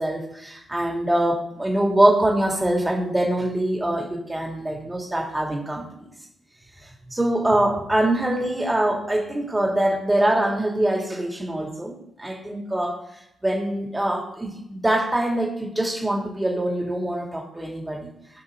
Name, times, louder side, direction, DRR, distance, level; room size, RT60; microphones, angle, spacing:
voice 1, 0.0-6.1 6.8-13.0 13.4-18.1, right 1 dB, 15° right, 1 dB, 2.6 m, -24 dB
16.0 x 6.0 x 3.9 m, 0.78 s
hypercardioid pair, 40°, 0 cm